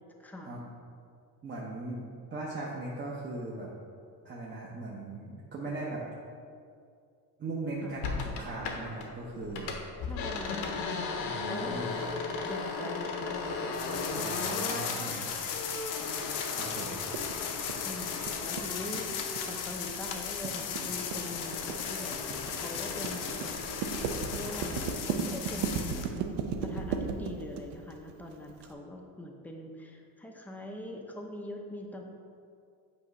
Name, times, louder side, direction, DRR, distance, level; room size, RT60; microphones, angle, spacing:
voice 1, 0.2-0.5 7.8-8.0 10.0-12.1 12.4-16.6 16.9-17.2 17.5-22.2 22.5-23.5 24.3-26.1 26.6-32.0, left 1 dB, 5° left, 1 dB, 0.5 m, -43 dB
voice 2, 1.4-3.7 4.2-6.0 7.4-9.7 11.2-12.0 14.1-15.3 16.4-17.0, right 2 dB, 25° right, -5 dB, 0.7 m, -39 dB
sound 1, 8.0-9.1 9.4-19.8 20.1-24.9, left 4 dB, 75° left, 1.0 m, -38 dB
sound 2, 13.7-26.1, left 7 dB, 50° left, 0.7 m, -37 dB
sound 3, 17.1-28.7, right 6 dB, 80° right, 0.7 m, -35 dB
8.4 x 3.0 x 5.2 m, 2.3 s
cardioid pair, 140°, 40 cm